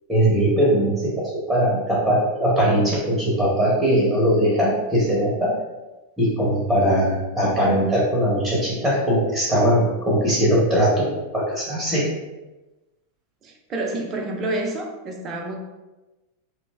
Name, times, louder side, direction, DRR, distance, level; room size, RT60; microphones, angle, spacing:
voice 1, 0.1-5.5 6.2-11.1 11.3-12.1, equal, 5° right, -6 dB, 0.9 m, -20 dB
voice 2, 13.4-15.6, right 2 dB, 30° right, 2 dB, 0.5 m, -28 dB
2.9 x 2.0 x 3.3 m, 1.1 s
figure-of-eight pair, 90°, 0 cm